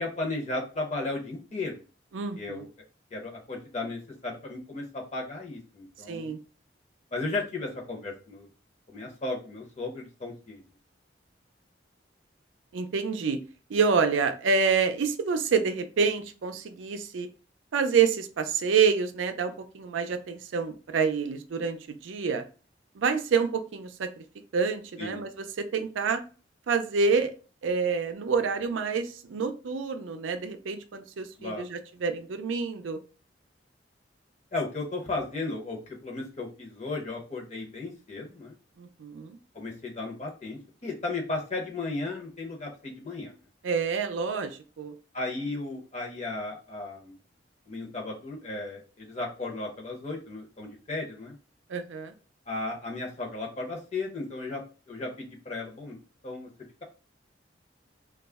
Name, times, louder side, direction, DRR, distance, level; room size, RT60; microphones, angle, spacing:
voice 1, 0.0-1.8 2.3-2.7 3.1-6.4 7.1-8.5 8.9-10.6 25.0-25.2 31.4-31.7 34.5-38.6 39.5-43.4 45.1-47.1 47.7-51.4 52.5-54.6 54.9-56.0 56.2-56.5, left 2 dB, 35° left, 0 dB, 0.7 m, -35 dB
voice 2, 2.1-2.7 6.1-6.4 12.7-13.4 13.7-17.3 17.7-22.4 22.9-24.2 24.5-25.3 25.6-26.2 26.7-27.3 27.6-33.0 38.8-39.4 43.6-44.9 51.7-52.1, right 5 dB, 90° right, 8 dB, 0.4 m, -27 dB
2.3 x 2.0 x 3.4 m, 0.35 s
head